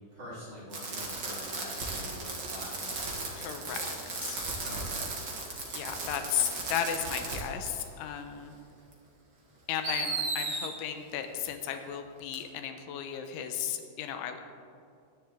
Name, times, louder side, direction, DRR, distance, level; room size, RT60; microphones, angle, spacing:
voice 1, 0.1-3.9 4.6-5.2, left 1 dB, 35° right, -9 dB, 4.4 m, -45 dB
Fireworks, 0.7-7.4 7.7-7.8 8.9-9.0 9.8-10.7 12.3-12.4, right 3 dB, 75° right, 1.0 m, -35 dB
voice 2, 3.4-3.9 4.2-4.5 5.7-8.6 9.7-14.4, left 9 dB, 90° left, 6 dB, 3.3 m, -35 dB
21.5 x 10.0 x 3.7 m, 2.4 s
omnidirectional pair, 5.3 m